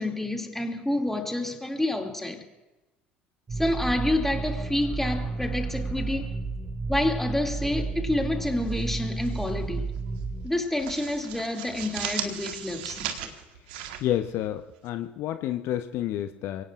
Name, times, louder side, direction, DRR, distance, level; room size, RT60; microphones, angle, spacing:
voice 1, 0.0-2.4 3.6-6.3 6.9-9.9 10.4-13.3, left 1 dB, 5° left, 2.5 m, -28 dB
sound 1, 3.5-10.5, right 3 dB, 30° right, 2.7 m, -32 dB
sound 2, 8.6-9.5 9.8-10.0 10.4-14.9, right 9 dB, 70° right, 1.4 m, -37 dB
voice 2, 14.0-16.6, left 12 dB, 55° left, 0.8 m, -29 dB
29.0 x 18.0 x 2.5 m
figure-of-eight pair, 65°, 5 cm